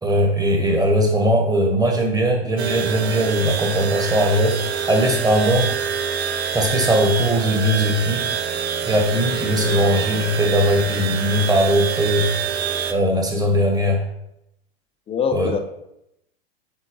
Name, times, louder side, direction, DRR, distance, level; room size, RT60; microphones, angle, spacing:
voice 1, 0.0-4.6 4.9-5.7 6.5-8.5 8.9-12.3 12.9-14.1 15.3-15.5, equal, 10° right, 2 dB, 1.3 m, -19 dB
sound 1, 2.6-12.9, right 7 dB, 90° right, 0.7 m, -26 dB
voice 2, 15.1-15.6, left 6 dB, 20° left, 7 dB, 0.5 m, -24 dB
9.0 x 4.1 x 3.0 m, 0.82 s
hypercardioid pair, 110°, 31 cm